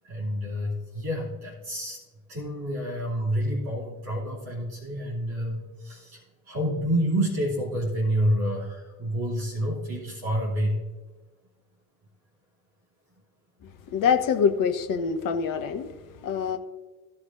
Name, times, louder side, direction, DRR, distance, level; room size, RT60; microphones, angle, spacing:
voice 1, 0.0-2.0 2.3-10.8, equal, 55° right, -5 dB, 3.1 m, -28 dB
voice 2, 13.9-15.9 16.2-16.6, left 6 dB, 50° left, 7 dB, 1.1 m, -24 dB
16.0 x 7.2 x 2.6 m, 1.3 s
figure-of-eight pair, 50°, 43 cm